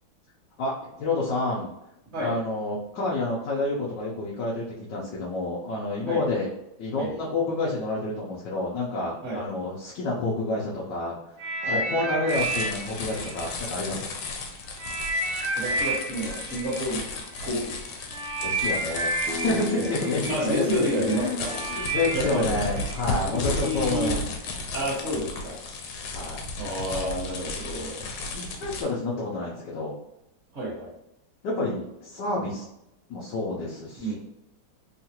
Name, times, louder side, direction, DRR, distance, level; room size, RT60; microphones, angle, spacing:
voice 1, 0.6-1.7 2.2-6.5 6.8-14.2 18.4-19.1 19.4-24.2 26.1-26.4 28.3-30.0 31.4-32.6 33.1-34.1, left 2 dB, 70° left, -5 dB, 1.1 m, -29 dB
sound 1, 11.4-14.3 14.8-23.8 24.5-24.6, right 2 dB, 65° right, 1.0 m, -31 dB
sound 2, 12.3-28.8, left 3 dB, 85° left, 1.5 m, -34 dB
voice 2, 15.5-17.0 17.4-18.1 19.8-19.9 20.3-21.6 22.1-22.5 23.2-24.2 24.7-25.6 26.6-28.1 30.5-30.9 34.0-34.1, equal, 40° right, -7 dB, 1.2 m, -30 dB
sound 3, 19.3-24.8, left 2 dB, 80° right, 1.4 m, -39 dB
3.7 x 2.4 x 2.8 m, 0.85 s
omnidirectional pair, 2.3 m